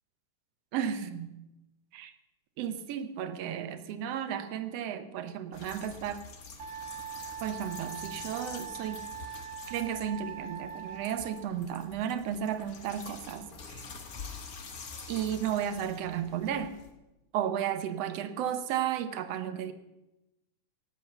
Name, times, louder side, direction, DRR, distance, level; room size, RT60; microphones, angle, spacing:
voice 1, 0.7-1.3 1.9-2.1 2.6-6.2 7.4-9.0 9.7-13.8 15.1-16.7 17.3-19.7, right 9 dB, 70° right, 10 dB, 1.6 m, -33 dB
sound 1, 5.5-16.9, left 4 dB, 55° left, 1.0 m, -47 dB
Wind instrument woodwind instrument, 6.6-11.5, right 8 dB, 50° right, 2.4 m, -42 dB
18.0 x 8.4 x 6.9 m, 0.99 s
omnidirectional pair, 3.7 m